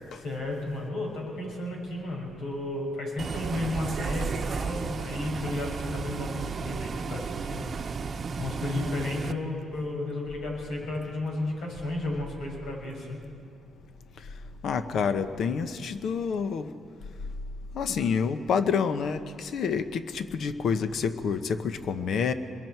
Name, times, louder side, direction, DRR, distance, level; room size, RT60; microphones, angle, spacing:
voice 1, 0.1-7.7 8.4-13.2, left 2 dB, 80° left, -2 dB, 6.2 m, -33 dB
Bus, 3.2-9.3, right 5 dB, 45° right, 0.8 m, -33 dB
voice 2, 14.2-16.7 17.7-22.3, left 6 dB, 65° left, 9 dB, 1.0 m, -28 dB
27.0 x 22.5 x 4.6 m, 2.2 s
cardioid pair, 90°, 0 cm